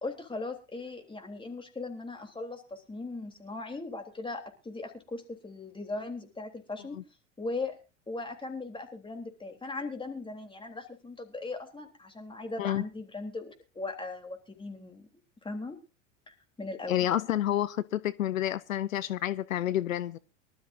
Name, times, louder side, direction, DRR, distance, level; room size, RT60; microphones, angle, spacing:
voice 1, 0.0-7.0 7.4-7.7 8.1-15.1 15.4-15.8 16.3-17.1, left 3 dB, 15° left, 3.5 m, -39 dB
voice 2, 16.9-20.2, left 12 dB, 85° left, 0.7 m, -29 dB
24.0 x 12.5 x 2.7 m
hypercardioid pair, 85°, 39 cm